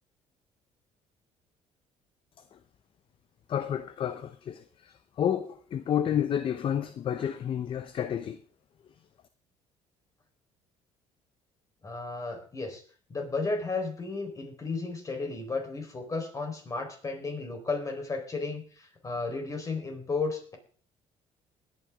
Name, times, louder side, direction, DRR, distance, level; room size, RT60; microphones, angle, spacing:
voice 1, 3.5-8.4, left 9 dB, 50° left, 0.8 m, -30 dB
voice 2, 11.8-12.8 13.1-20.6, left 3 dB, 30° left, 4.2 m, -33 dB
20.5 x 9.4 x 3.6 m
cardioid pair, 100°, 12 cm